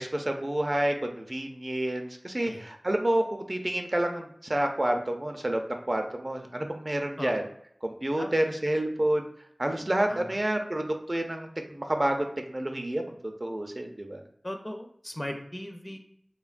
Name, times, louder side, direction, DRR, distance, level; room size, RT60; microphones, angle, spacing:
voice 1, 0.0-7.4 7.8-9.3 9.6-14.2, right 1 dB, 45° right, 4 dB, 0.4 m, -29 dB
voice 2, 14.4-16.0, left 1 dB, 25° left, 4 dB, 0.5 m, -37 dB
3.3 x 2.1 x 2.4 m, 0.67 s
wide cardioid pair, 40°, 0 cm